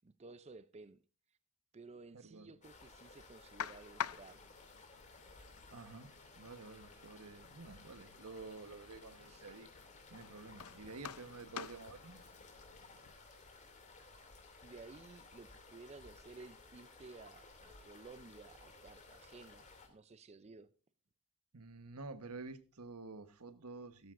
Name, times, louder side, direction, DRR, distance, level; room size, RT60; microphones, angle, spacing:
voice 1, 0.0-1.0 1.7-4.5 9.3-9.5 14.6-20.7, right 3 dB, 30° right, 0.5 m, -55 dB
voice 2, 2.1-2.5 5.7-6.1 6.4-9.7 10.1-12.2 21.5-24.1, right 3 dB, 75° right, 1.2 m, -50 dB
sound 1, 2.6-19.9, left 3 dB, 35° left, 2.6 m, -58 dB
sound 2, 3.6-13.1, left 8 dB, 70° left, 0.6 m, -49 dB
16.0 x 14.0 x 2.5 m
head